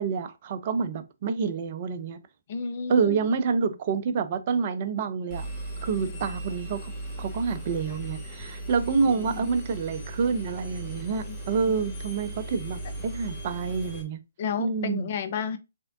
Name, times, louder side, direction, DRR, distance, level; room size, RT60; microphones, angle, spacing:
voice 1, 0.0-2.2 2.9-5.4 5.8-6.9 7.2-14.2 14.6-15.1, right 5 dB, 40° right, 0.5 m, -28 dB
voice 2, 2.5-3.2 6.0-6.2 9.1-9.5 11.3-11.4 14.4-15.6, left 6 dB, 40° left, 0.5 m, -32 dB
Engine, 5.3-14.0, right 1 dB, 20° left, 1.1 m, -37 dB
3.5 x 3.2 x 2.4 m
figure-of-eight pair, 135°, 0 cm